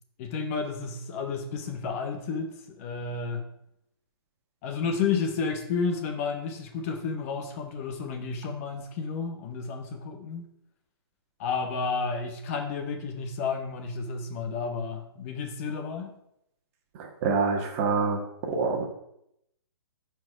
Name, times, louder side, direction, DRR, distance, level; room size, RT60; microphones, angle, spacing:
voice 1, 0.2-3.4 4.6-10.5 11.4-16.1, left 5 dB, 35° left, 4 dB, 1.1 m, -31 dB
voice 2, 17.0-18.9, right 4 dB, 30° right, 3 dB, 1.5 m, -26 dB
13.0 x 4.7 x 5.0 m, 0.78 s
hypercardioid pair, 155°, 14 cm